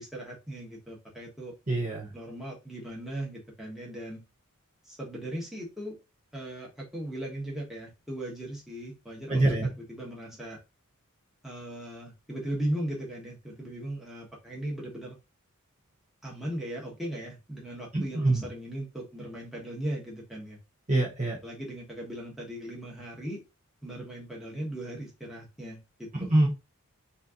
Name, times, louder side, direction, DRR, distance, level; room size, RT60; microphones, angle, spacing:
voice 1, 0.0-1.5 2.1-4.2 4.8-6.0 6.3-9.4 9.9-10.6 11.4-15.2 16.2-20.6 21.4-23.4 23.8-26.3, right 1 dB, ahead, 1.3 m, -38 dB
voice 2, 1.7-2.1 9.3-9.7 17.9-18.4 20.9-21.4 26.2-26.5, right 2 dB, 30° right, 0.8 m, -25 dB
4.1 x 2.7 x 3.6 m
head